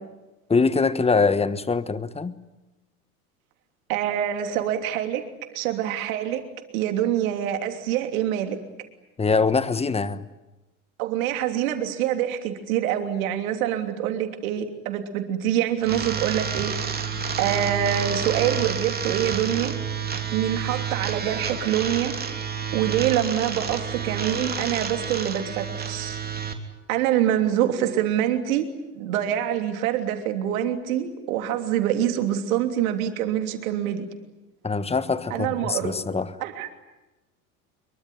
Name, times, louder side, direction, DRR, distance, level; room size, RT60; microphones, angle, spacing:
voice 1, 0.5-2.4 9.2-10.2 34.6-36.3, left 4 dB, 15° left, 14 dB, 1.4 m, -23 dB
voice 2, 3.9-5.2 5.5-6.4 6.7-8.6 11.0-16.7 17.4-19.7 20.3-22.1 22.7-26.2 26.9-28.6 28.9-34.0 35.3-35.9 36.4-36.7, right 11 dB, 70° right, 6 dB, 3.2 m, -25 dB
sound 1, 15.8-26.5, right 6 dB, 20° right, 3.3 m, -29 dB
25.5 x 23.0 x 9.5 m, 1.1 s
hypercardioid pair, 80°, 44 cm